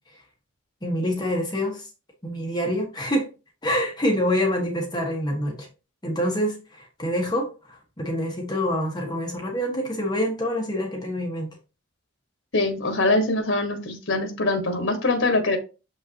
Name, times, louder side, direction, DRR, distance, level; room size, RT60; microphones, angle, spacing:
voice 1, 0.8-1.8 2.2-3.3 3.6-5.7 6.0-11.5, equal, 20° left, 0 dB, 1.4 m, -26 dB
voice 2, 12.5-15.6, left 2 dB, 75° left, 6 dB, 1.4 m, -23 dB
6.9 x 5.5 x 2.9 m, 0.31 s
head